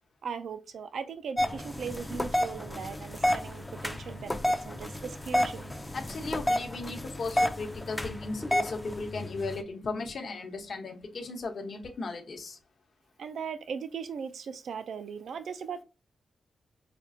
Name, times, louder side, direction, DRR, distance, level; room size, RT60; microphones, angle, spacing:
voice 1, 0.2-5.7 13.2-15.8, right 6 dB, 70° right, 0.4 m, -38 dB
sound 1, 1.4-9.6, left 1 dB, 10° left, 0.4 m, -31 dB
voice 2, 5.9-12.6, left 3 dB, 55° left, 0.8 m, -36 dB
5.1 x 2.4 x 2.6 m
wide cardioid pair, 115°, 0 cm